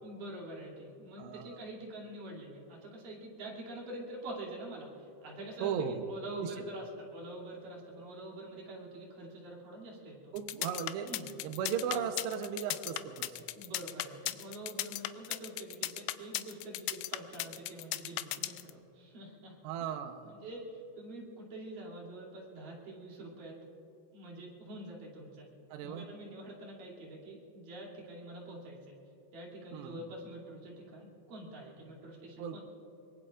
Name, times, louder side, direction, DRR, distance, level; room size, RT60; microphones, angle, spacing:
voice 1, 0.0-10.3 11.0-11.3 13.5-19.6 20.2-23.6 24.1-25.5 25.8-29.0 29.3-32.6, right 1 dB, 45° right, -4 dB, 4.0 m, -46 dB
voice 2, 1.2-1.6 5.6-6.1 6.4-6.5 10.3-11.1 11.4-13.3 19.6-20.3 25.7-26.0 29.7-30.1 32.4-32.6, right 7 dB, 75° right, 5 dB, 2.7 m, -36 dB
sound 1, 10.4-18.7, left 16 dB, 85° left, 3.0 m, -36 dB
24.5 x 22.5 x 2.5 m, 2.9 s
omnidirectional pair, 5.8 m